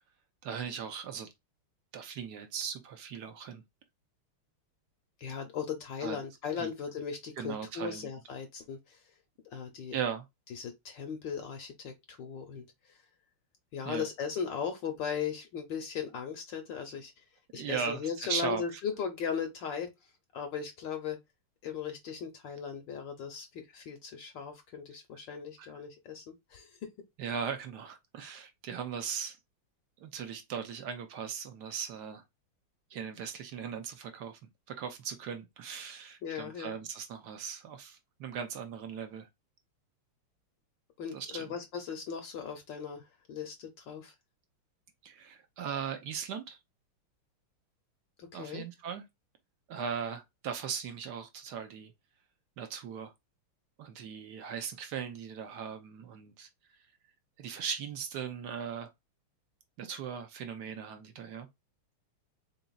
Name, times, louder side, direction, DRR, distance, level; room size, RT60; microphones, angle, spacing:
voice 1, 0.4-1.3 1.9-3.6 6.0-6.2 6.6-6.7 7.4-8.1 9.9-10.2 13.8-14.1 17.5-18.8 25.6-25.7 27.2-29.4 30.0-32.2 32.9-34.4 34.7-39.3 41.1-41.5 45.0-46.6 48.3-49.0 49.7-51.9 52.6-53.1 53.8-56.5 57.4-58.9 59.8-61.5, right 7 dB, 65° right, 1.0 m, -38 dB
voice 2, 5.2-9.1 9.5-10.0 10.5-13.0 13.7-17.2 17.5-21.2 21.6-26.9 36.2-36.8 41.0-44.1 48.2-48.6, left 7 dB, 65° left, 1.3 m, -38 dB
4.0 x 3.9 x 2.3 m
omnidirectional pair, 2.4 m